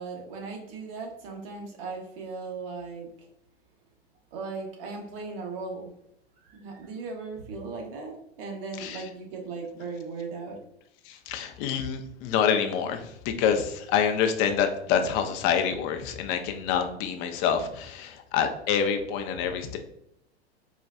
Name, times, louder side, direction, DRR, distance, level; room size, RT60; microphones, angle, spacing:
voice 1, 0.0-3.1 4.3-5.9 6.5-10.6, right 4 dB, 60° right, 1 dB, 1.1 m, -37 dB
voice 2, 11.0-19.8, left 7 dB, 40° left, 6 dB, 0.5 m, -27 dB
4.3 x 2.4 x 2.3 m, 0.77 s
hypercardioid pair, 105°, 32 cm